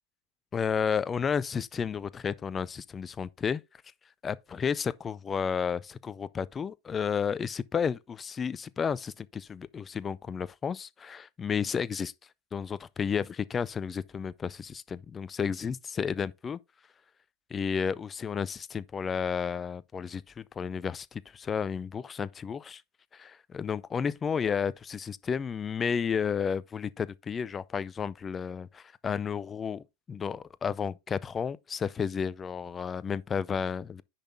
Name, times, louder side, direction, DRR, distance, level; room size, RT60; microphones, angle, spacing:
voice 1, 0.5-3.6 4.2-12.1 12.5-16.6 17.5-22.8 23.1-34.0, left 6 dB, 20° left, 0.5 m, -32 dB
10.0 x 5.8 x 3.6 m
figure-of-eight pair, 90°, 0 cm